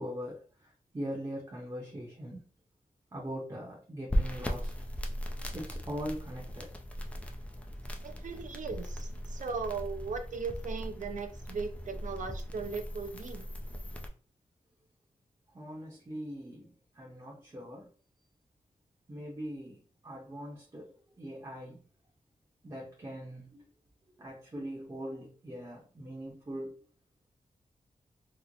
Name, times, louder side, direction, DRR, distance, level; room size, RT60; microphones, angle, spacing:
voice 1, 0.0-2.5 3.1-4.7 5.5-6.7 15.5-17.9 19.1-21.8 22.6-23.7 24.2-26.8, equal, 25° right, -3 dB, 0.8 m, -41 dB
sound 1, 4.1-14.1, equal, 10° left, 0.4 m, -38 dB
voice 2, 8.0-13.4, right 5 dB, 65° right, 6 dB, 0.4 m, -38 dB
3.0 x 2.0 x 3.8 m, 0.40 s
wide cardioid pair, 170°, 14 cm